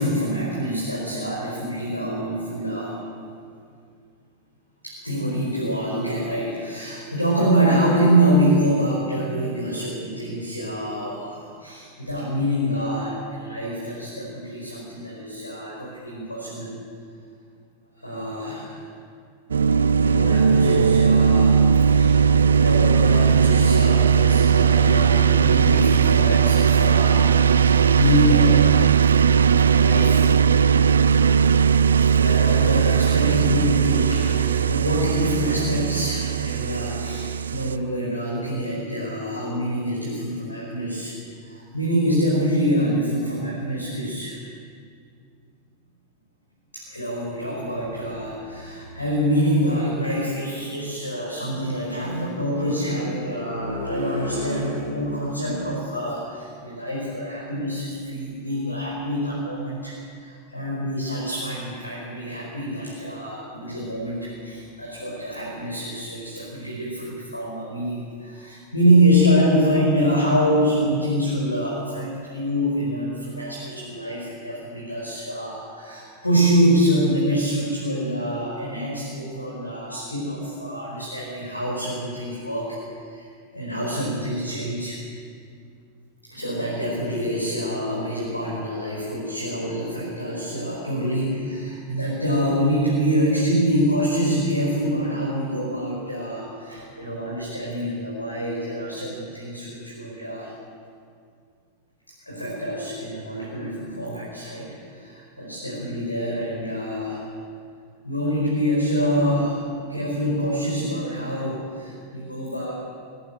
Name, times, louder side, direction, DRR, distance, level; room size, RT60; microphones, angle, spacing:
voice 1, 0.0-3.0 4.8-16.7 18.0-18.8 20.0-21.6 21.8-22.2 22.5-28.9 29.8-30.3 32.0-41.1 41.4-44.4 46.7-82.8 83.1-85.0 86.3-100.5 102.3-107.3 108.0-112.7, equal, 85° left, -5 dB, 5.0 m, -25 dB
sound 1, 19.5-37.8, right 7 dB, 70° right, 0.6 m, -18 dB
22.5 x 15.0 x 9.0 m, 2.2 s
figure-of-eight pair, 90°, 0 cm